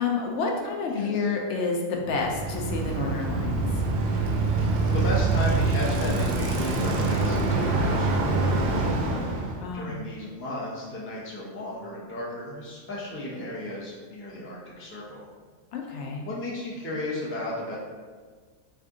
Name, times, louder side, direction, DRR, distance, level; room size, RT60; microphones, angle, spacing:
voice 1, 0.0-3.5 9.6-10.0 15.7-16.2, left 4 dB, 70° left, 0 dB, 0.8 m, -29 dB
voice 2, 0.9-1.3 4.9-15.3 16.2-17.8, left 1 dB, 15° left, -6 dB, 0.4 m, -35 dB
Bicycle, 2.1-9.6, right 3 dB, 65° right, 0.7 m, -25 dB
3.4 x 2.6 x 3.5 m, 1.5 s
omnidirectional pair, 1.3 m